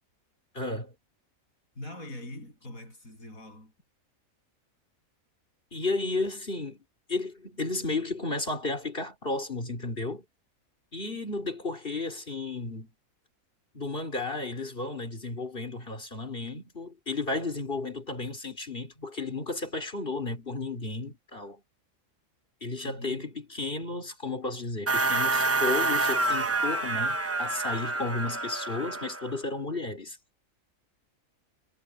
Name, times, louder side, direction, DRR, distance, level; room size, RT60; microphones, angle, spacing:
voice 1, 0.5-0.9 5.7-6.8 7.1-10.2 10.9-12.9 13.7-21.6 22.6-30.2, left 3 dB, 40° left, 4.5 m, -33 dB
voice 2, 1.8-3.7 22.8-23.2, left 1 dB, 75° left, 8.7 m, -42 dB
sound 1, 24.9-29.4, right 3 dB, 15° right, 0.5 m, -28 dB
omnidirectional pair, 1.5 m